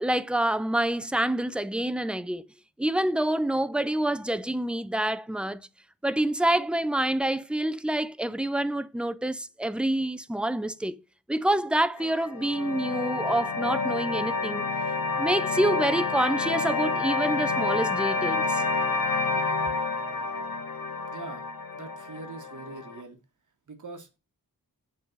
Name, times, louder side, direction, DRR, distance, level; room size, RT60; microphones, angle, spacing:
voice 1, 0.0-2.5 2.8-5.6 6.0-11.0 11.3-14.7 15.2-18.6, right 1 dB, 5° right, 0.3 m, -27 dB
sound 1, 12.0-23.0, left 3 dB, 85° left, 1.4 m, -29 dB
voice 2, 21.1-21.4 21.7-23.2 23.7-24.2, right 3 dB, 60° right, 1.6 m, -42 dB
7.5 x 4.5 x 5.3 m
wide cardioid pair, 165°, 35 cm